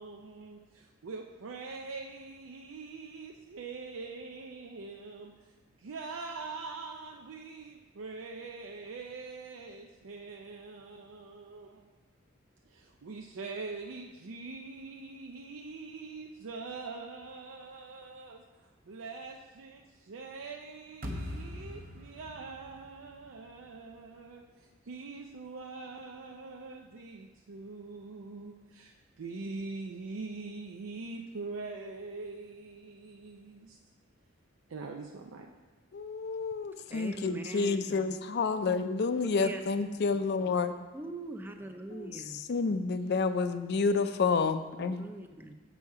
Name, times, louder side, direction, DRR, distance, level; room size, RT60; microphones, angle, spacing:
voice 1, 0.0-5.5 5.8-11.9 12.7-33.8 34.7-35.5, right 3 dB, 85° right, 1 dB, 0.5 m, -43 dB
sound 1, 21.0-24.1, left 1 dB, 45° right, 0.8 m, -42 dB
voice 2, 35.9-40.7 41.9-45.0, left 4 dB, 55° left, 10 dB, 0.4 m, -29 dB
voice 3, 36.9-38.1 39.4-39.6 40.9-42.4 44.8-45.5, right 2 dB, 10° right, 6 dB, 0.5 m, -42 dB
7.0 x 5.5 x 4.7 m, 1.3 s
head